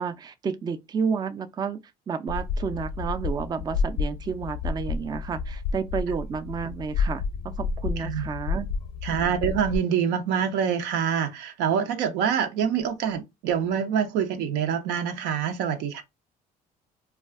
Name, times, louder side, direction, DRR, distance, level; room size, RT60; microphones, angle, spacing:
voice 1, 0.0-1.8 2.1-7.2 7.6-8.7, right 6 dB, 25° right, 0.3 m, -30 dB
sound 1, 2.3-9.8, left 4 dB, 80° left, 0.5 m, -30 dB
voice 2, 9.0-16.0, right 8 dB, 90° right, 0.6 m, -26 dB
2.4 x 2.3 x 3.5 m
cardioid pair, 110°, 17 cm